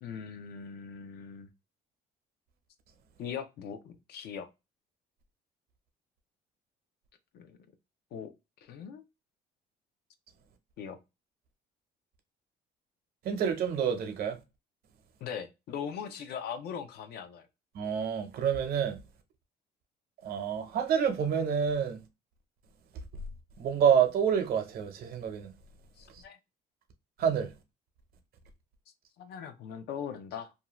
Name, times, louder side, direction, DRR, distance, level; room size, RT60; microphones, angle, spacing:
voice 1, 0.0-1.5 3.2-4.5 7.3-7.6 8.1-8.3 8.6-9.0 10.8-11.0 15.2-17.5 26.0-26.4 29.2-30.5, left 7 dB, 70° left, 0.6 m, -40 dB
voice 2, 13.2-14.4 17.7-19.0 20.2-22.0 23.6-25.5 27.2-27.5, right 7 dB, 65° right, 0.8 m, -28 dB
2.6 x 2.3 x 2.9 m
cardioid pair, 110°, 17 cm